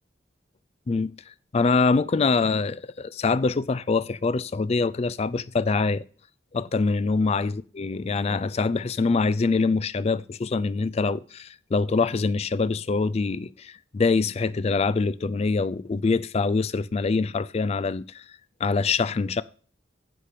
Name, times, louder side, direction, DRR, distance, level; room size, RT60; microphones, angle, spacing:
voice 1, 1.5-6.0 6.5-18.2 18.6-19.4, left 4 dB, 35° left, 0.3 m, -24 dB
9.9 x 5.0 x 6.7 m
head